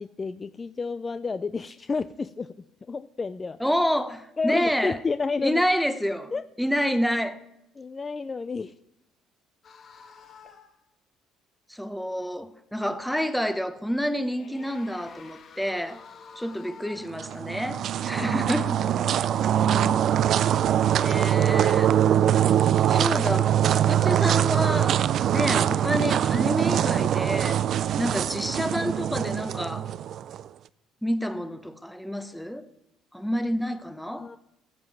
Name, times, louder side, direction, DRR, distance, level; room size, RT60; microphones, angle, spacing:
voice 1, 0.0-2.5 2.9-3.6 4.4-5.6 6.3-6.4 7.8-8.7 18.2-18.4 18.8-20.0 34.1-34.4, left 4 dB, 25° left, 0.4 m, -31 dB
voice 2, 3.6-5.0 5.4-6.3 6.6-7.4 11.7-16.0 16.4-18.8 20.9-22.0 22.9-25.0 25.3-27.6 28.0-29.9 31.0-32.6 33.1-34.3, equal, ahead, 0.9 m, -28 dB
sound 1, 9.6-10.8 14.0-17.3, left 5 dB, 45° left, 1.4 m, -49 dB
sound 2, 17.1-30.4, right 10 dB, 55° right, 0.3 m, -23 dB
14.5 x 7.6 x 4.7 m
supercardioid pair, 95°, 0 cm